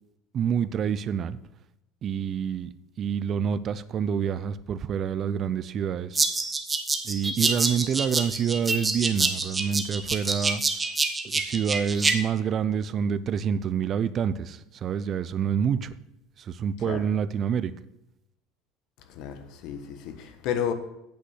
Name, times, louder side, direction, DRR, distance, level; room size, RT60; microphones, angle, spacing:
voice 1, 0.3-1.4 2.0-6.2 7.0-10.6 11.2-15.9 16.4-17.7, right 7 dB, 40° right, 0.5 m, -27 dB
sound 1, 6.2-12.2, right 3 dB, 15° right, 1.0 m, -27 dB
voice 2, 19.1-20.7, left 9 dB, 65° left, 1.2 m, -32 dB
8.8 x 5.4 x 7.9 m
supercardioid pair, 115°, 0 cm